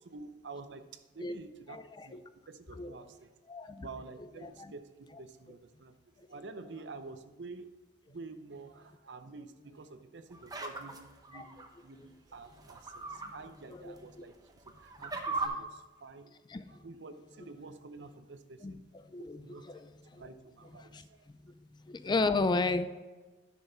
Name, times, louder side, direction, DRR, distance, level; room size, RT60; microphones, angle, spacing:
voice 1, 0.0-3.3 3.8-7.7 8.1-16.4 16.7-18.8 19.2-21.3, right 3 dB, 70° right, 10 dB, 0.7 m, -49 dB
voice 2, 1.7-2.2 2.8-3.0 3.5-3.9 4.2-4.7 11.3-11.5 13.3-13.4 13.7-14.3 16.5-16.6 18.6-18.8 19.1-19.9 20.1-20.2 20.9-21.1 21.9-22.9, left 3 dB, 25° left, 12 dB, 0.4 m, -34 dB
sound 1, 10.3-11.7 12.6-13.3 13.7-13.8 14.5-15.5, right 3 dB, 20° right, 0.8 m, -38 dB
11.0 x 6.3 x 3.9 m, 1.2 s
head